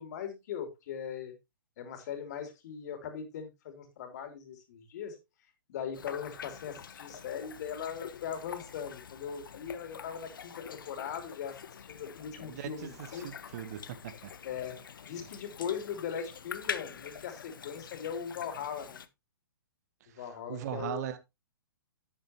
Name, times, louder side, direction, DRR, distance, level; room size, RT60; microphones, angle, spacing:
voice 1, 0.0-1.3 1.8-5.2 5.7-13.3 14.4-14.8 15.0-19.0 20.2-21.1, left 8 dB, 50° left, 3.2 m, -39 dB
sound 1, 5.9-19.1, left 7 dB, 65° left, 1.0 m, -45 dB
voice 2, 12.4-14.4 20.1-20.2 20.5-21.3, right 11 dB, 45° right, 1.4 m, -39 dB
11.0 x 8.2 x 3.0 m
figure-of-eight pair, 120°, 12 cm